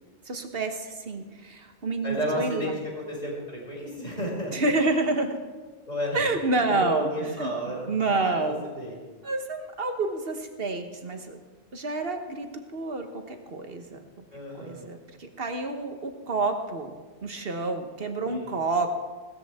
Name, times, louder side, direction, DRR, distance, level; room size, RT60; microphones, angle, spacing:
voice 1, 0.2-2.7 4.5-5.4 6.1-7.1 7.4-7.5 7.9-8.7 9.2-11.4 11.7-14.0 14.5-16.9 17.2-18.9, right 3 dB, 55° right, 6 dB, 1.5 m, -28 dB
voice 2, 2.0-4.6 5.9-6.2 6.5-7.9 8.2-9.0 14.3-14.9 18.2-18.6, equal, 35° left, -4 dB, 5.4 m, -32 dB
18.5 x 14.0 x 3.7 m, 1.4 s
omnidirectional pair, 1.2 m